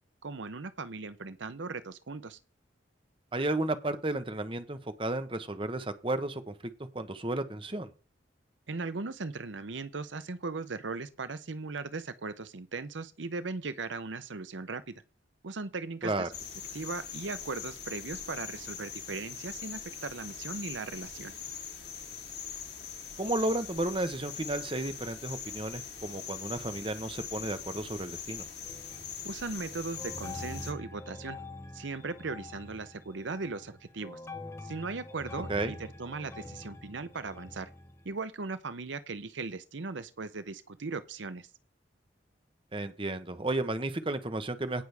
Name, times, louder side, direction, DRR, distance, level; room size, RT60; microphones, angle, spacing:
voice 1, 0.2-2.4 8.7-14.8 15.4-16.3 16.7-21.3 29.2-31.4 31.7-34.2 34.6-37.7 38.0-41.5, right 3 dB, 80° right, 0.8 m, -38 dB
voice 2, 3.3-7.9 16.0-16.3 23.2-28.4 35.5-35.7 42.7-44.8, right 2 dB, 30° right, 1.1 m, -33 dB
sound 1, 16.3-30.7, left 7 dB, 60° left, 3.2 m, -42 dB
sound 2, 28.6-29.4 29.7-38.1, left 2 dB, 15° left, 1.0 m, -45 dB
18.0 x 6.2 x 3.5 m
head